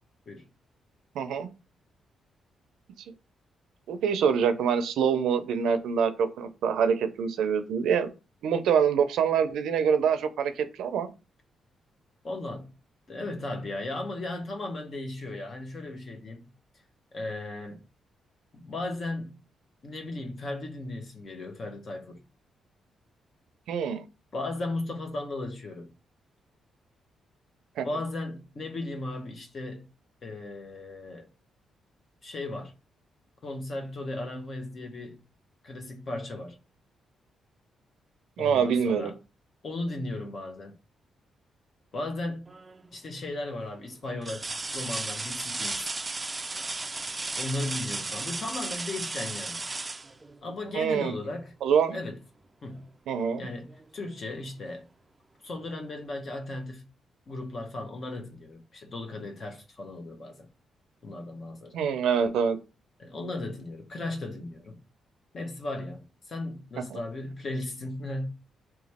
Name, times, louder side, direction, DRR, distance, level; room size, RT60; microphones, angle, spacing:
voice 1, 1.1-1.5 3.9-8.1 8.4-11.1 23.7-24.1 27.8-27.9 38.4-39.1 50.7-51.1 51.6-52.0 53.1-53.5 61.7-62.6, right 7 dB, 85° right, 0.5 m, -25 dB
voice 2, 12.2-12.7 13.1-16.5 17.1-17.8 18.5-19.3 19.8-22.2 24.3-25.9 27.8-29.9 30.2-31.3 32.2-32.7 33.4-35.2 35.6-36.6 38.4-39.2 39.6-40.7 41.9-42.5 42.9-45.9 47.3-49.7 50.4-51.5 51.9-52.2 52.6-52.9 53.4-54.9 55.4-56.8 57.3-60.5 61.0-61.8 63.0-64.8 65.3-68.3, left 2 dB, 45° left, 0.8 m, -36 dB
sound 1, 42.5-42.9 43.5-43.6 44.2-50.9 52.7-52.8 53.3-54.3 55.6-55.7, right 3 dB, 20° right, 0.3 m, -35 dB
2.9 x 2.3 x 4.2 m
cardioid pair, 110°, 0 cm